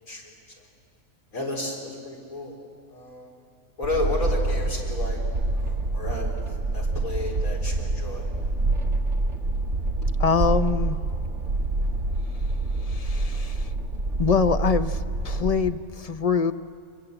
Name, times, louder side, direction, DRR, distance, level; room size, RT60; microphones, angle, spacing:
voice 1, 0.1-0.7 1.3-2.6 2.9-3.3 3.8-5.2 5.5-8.3, left 1 dB, 75° left, 0 dB, 4.8 m, -32 dB
sound 1, 3.8-15.7, right 2 dB, 55° right, 2.1 m, -26 dB
voice 2, 10.2-11.0 12.8-13.7 14.2-16.5, left 5 dB, 45° left, 9 dB, 0.5 m, -24 dB
25.5 x 22.0 x 7.9 m, 2.4 s
omnidirectional pair, 1.5 m